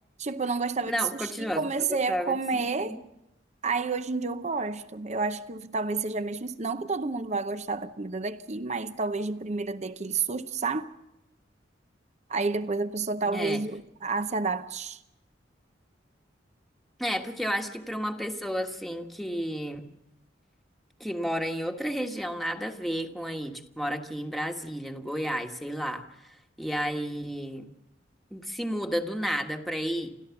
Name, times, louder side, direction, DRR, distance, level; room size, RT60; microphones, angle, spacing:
voice 1, 0.2-3.0 3.6-10.9 12.3-15.0, right 4 dB, 40° right, 0.8 m, -30 dB
voice 2, 0.9-1.6 1.9-3.0 13.2-13.6 17.0-19.9 21.0-27.7 28.3-30.1, equal, ahead, 1.4 m, -32 dB
29.0 x 14.0 x 7.1 m
head